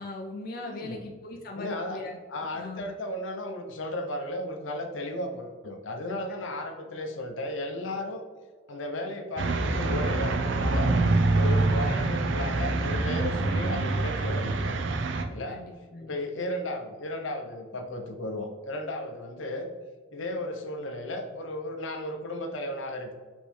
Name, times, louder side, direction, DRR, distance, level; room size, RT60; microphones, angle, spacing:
voice 1, 0.0-2.2 2.5-2.9 15.5-16.1, left 2 dB, 50° left, 1 dB, 0.4 m, -39 dB
voice 2, 0.6-1.0 1.5-2.0 2.3-8.2 8.7-11.0 11.3-14.8 15.3-15.6 16.0-19.7 20.1-23.1, left 1 dB, 80° left, 4 dB, 0.7 m, -34 dB
sound 1, 9.4-15.2, right 2 dB, 70° right, 0.5 m, -25 dB
5.2 x 3.1 x 3.1 m, 1.5 s
head